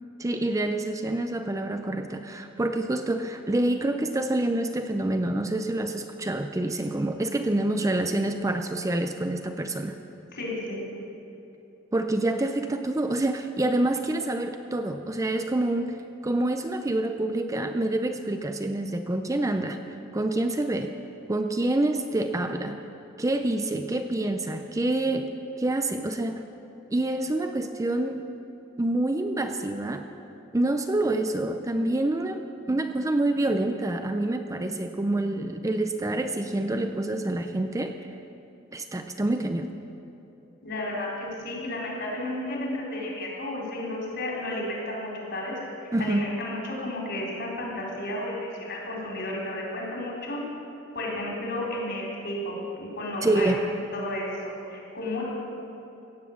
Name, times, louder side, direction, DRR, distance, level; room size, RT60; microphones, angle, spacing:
voice 1, 0.2-10.0 11.9-19.8 20.1-20.9 21.3-22.8 23.2-25.3 25.6-26.4 26.9-28.2 28.8-30.0 30.5-32.4 32.7-37.9 38.7-39.7 45.9-46.3 53.2-53.7, right 1 dB, 15° right, 6 dB, 0.5 m, -27 dB
voice 2, 10.3-10.8 40.6-50.4 50.9-53.5 53.9-55.2, left 1 dB, 55° left, -4 dB, 4.0 m, -33 dB
17.0 x 8.2 x 7.2 m, 3.0 s
head